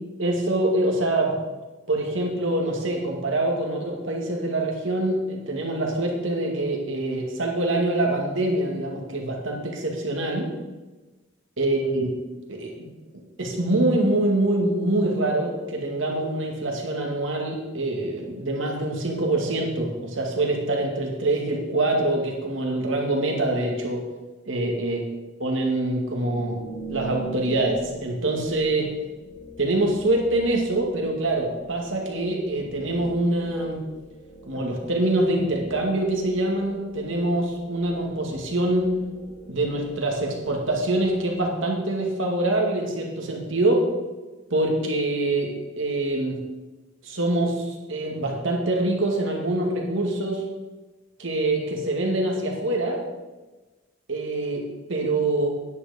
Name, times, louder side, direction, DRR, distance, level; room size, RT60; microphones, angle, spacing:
voice 1, 0.2-1.4 1.9-10.5 11.6-12.1 12.5-12.9 13.4-24.0 24.5-25.0 25.4-26.5 26.9-28.9 29.6-33.8 34.5-38.9 39.5-43.8 44.5-46.4 47.0-50.4 51.2-53.0 54.1-55.5, right 2 dB, 75° right, 0 dB, 2.2 m, -25 dB
sound 1, 26.0-41.8, right 2 dB, 80° left, 2.7 m, -43 dB
9.7 x 9.1 x 5.1 m, 1.2 s
head